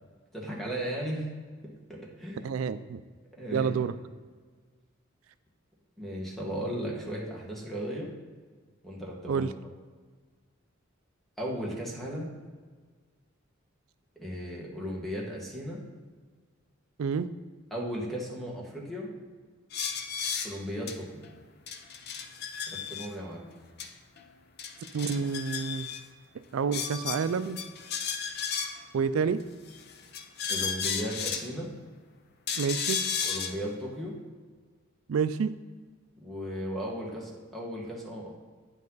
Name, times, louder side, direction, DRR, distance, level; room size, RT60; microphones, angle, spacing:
voice 1, 0.3-1.3 2.2-2.4 3.3-3.7 6.0-8.1 8.8-9.5 11.4-12.3 14.1-15.8 17.7-19.1 20.4-21.2 22.7-23.5 30.5-31.7 33.2-34.1 36.2-38.3, equal, ahead, -3 dB, 1.6 m, -36 dB
voice 2, 2.4-3.0 3.5-3.9 9.3-9.5 17.0-17.3 24.9-25.9 26.5-27.6 28.9-29.4 32.6-33.0 35.1-35.5, right 6 dB, 85° right, 13 dB, 0.4 m, -28 dB
sound 1, 19.7-20.5 20.9-21.0 21.2-21.3 21.7-23.1 23.8-23.9 24.2-24.3 24.6-26.0 26.7-28.9 29.7-31.5 32.5-33.5, left 6 dB, 50° left, 0.6 m, -34 dB
9.2 x 5.3 x 4.0 m, 1.5 s
head